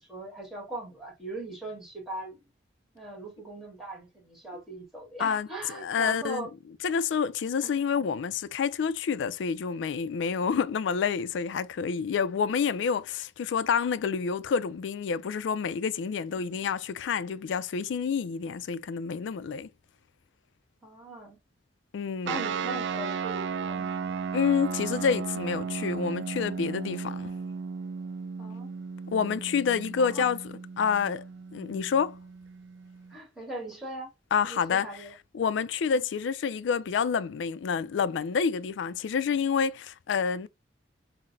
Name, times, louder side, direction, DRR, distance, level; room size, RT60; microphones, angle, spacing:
voice 1, 0.0-2.4 2.9-6.5 7.6-7.8 20.8-21.4 22.2-23.9 28.4-28.7 30.0-30.3 33.1-34.1 34.4-35.1 35.9-36.0, right 2 dB, ahead, 1.5 m, -40 dB
voice 2, 5.8-6.5 6.8-19.7 21.9-22.5 24.3-27.3 29.1-30.4 30.8-31.2 31.5-32.2 34.3-34.9 35.3-40.5, left 6 dB, 80° left, 0.3 m, -28 dB
sound 1, 22.3-33.2, right 5 dB, 75° right, 0.4 m, -35 dB
5.7 x 2.0 x 2.5 m
head